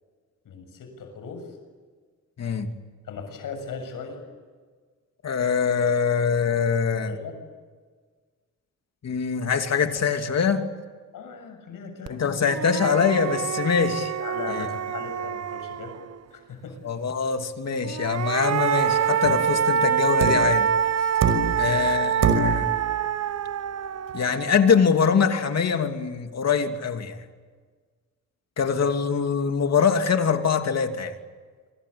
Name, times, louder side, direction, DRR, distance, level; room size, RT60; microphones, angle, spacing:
voice 1, 0.5-1.5 3.1-4.2 7.0-7.4 11.1-12.5 14.2-16.0 16.3-16.8 21.5-22.0, left 5 dB, 75° left, 6 dB, 7.2 m, -38 dB
voice 2, 5.2-7.2 9.0-10.7 12.1-14.1 14.5-14.7 16.8-20.7 21.6-22.7 24.1-27.2 28.6-31.1, left 6 dB, 50° left, 6 dB, 2.8 m, -23 dB
sound 1, 12.1-12.2 12.5-16.2 17.8-25.1, right 8 dB, 50° right, 1.0 m, -26 dB
sound 2, 19.2-19.5 20.2-20.6 21.2-21.7 22.2-22.7 24.1-24.2, right 5 dB, 75° right, 5.5 m, -24 dB
27.0 x 25.5 x 8.7 m, 1.5 s
cardioid pair, 90°, 33 cm